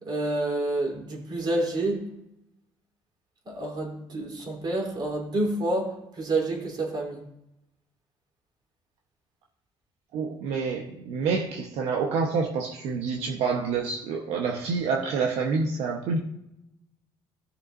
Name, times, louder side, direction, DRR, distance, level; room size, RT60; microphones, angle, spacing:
voice 1, 0.0-2.0 3.5-7.2, right 2 dB, 45° right, -1 dB, 3.7 m, -28 dB
voice 2, 10.1-16.2, right 5 dB, 75° right, 0 dB, 1.1 m, -27 dB
16.5 x 6.8 x 2.7 m, 0.83 s
supercardioid pair, 80°, 10 cm